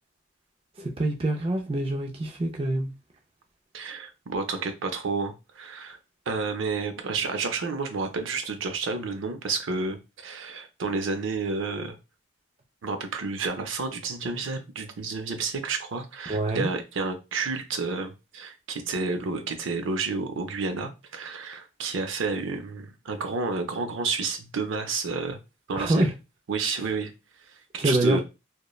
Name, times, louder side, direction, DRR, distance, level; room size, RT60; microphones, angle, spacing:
voice 1, 0.8-2.9 16.3-16.7 25.7-26.1 27.8-28.2, right 1 dB, 30° right, 0.3 m, -25 dB
voice 2, 3.7-6.0 6.3-12.0 12.8-25.4 25.7-26.1 26.5-27.1 27.5-28.2, right 4 dB, 80° right, 0.5 m, -30 dB
3.0 x 2.1 x 2.3 m
head